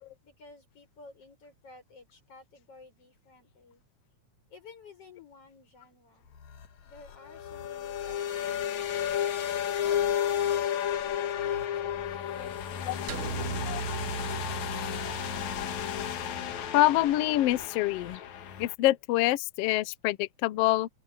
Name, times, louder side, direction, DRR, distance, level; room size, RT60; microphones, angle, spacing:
voice 1, 0.2-3.8 4.5-6.3 6.8-9.0 9.8-13.4, left 3 dB, 45° left, 8.1 m, -53 dB
sound 1, 6.3-18.7, left 9 dB, 65° left, 2.6 m, -32 dB
sound 2, 13.1-17.5, right 8 dB, 70° right, 1.3 m, -39 dB
voice 2, 16.7-18.2 18.6-20.9, left 16 dB, 85° left, 1.3 m, -26 dB
open air
omnidirectional pair, 3.6 m